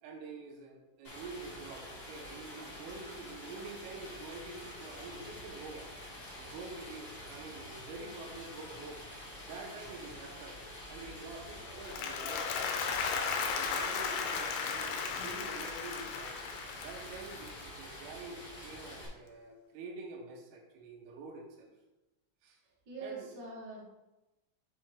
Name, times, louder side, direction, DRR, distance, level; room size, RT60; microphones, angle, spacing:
voice 1, 0.0-5.9 6.4-9.0 9.5-10.6 10.9-12.5 13.0-16.4 16.8-21.7 22.4-22.6 23.0-23.3, right 3 dB, 80° right, 2 dB, 3.5 m, -47 dB
Stream, 1.0-19.1, left 1 dB, 55° left, 1.0 m, -47 dB
Applause, 11.7-18.0, left 5 dB, 80° left, 2.7 m, -36 dB
voice 2, 22.8-23.8, right 3 dB, 60° right, -6 dB, 1.2 m, -44 dB
7.6 x 3.7 x 4.7 m, 1.0 s
omnidirectional pair, 5.9 m